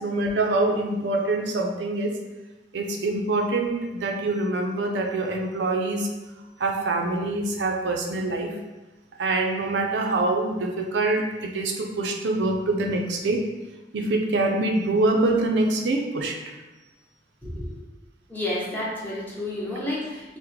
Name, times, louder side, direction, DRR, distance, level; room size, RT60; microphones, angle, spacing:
voice 1, 0.0-2.2 2.7-6.1 6.6-8.6 9.2-13.4 13.9-16.4, right 2 dB, 85° right, 3 dB, 0.4 m, -25 dB
voice 2, 17.4-17.8 18.3-20.4, left 1 dB, 10° left, -7 dB, 0.8 m, -30 dB
3.5 x 2.1 x 3.1 m, 1.1 s
head